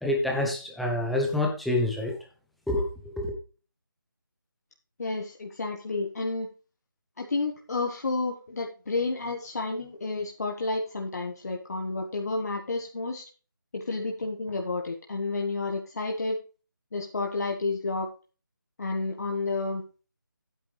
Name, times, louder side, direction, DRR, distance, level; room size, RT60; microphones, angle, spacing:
voice 1, 0.0-2.1 2.7-2.9 3.2-3.3, left 1 dB, ahead, -1 dB, 0.3 m, -27 dB
voice 2, 5.0-6.5 7.2-13.2 13.7-16.4 16.9-18.1 18.8-19.8, left 3 dB, 50° left, 1 dB, 1.4 m, -30 dB
10.0 x 9.0 x 3.1 m, 0.35 s
figure-of-eight pair, 160°, 11 cm